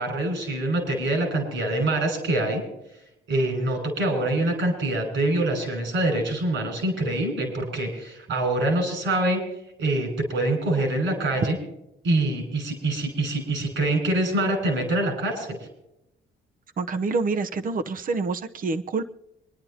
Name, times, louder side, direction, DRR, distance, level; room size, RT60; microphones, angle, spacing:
voice 1, 0.0-2.6 3.3-9.4 9.8-11.6 12.0-15.6, right 1 dB, 75° right, 3 dB, 6.1 m, -25 dB
voice 2, 16.8-19.0, right 3 dB, 45° right, 8 dB, 0.9 m, -27 dB
26.5 x 10.5 x 2.9 m, 0.85 s
cardioid pair, 90°, 20 cm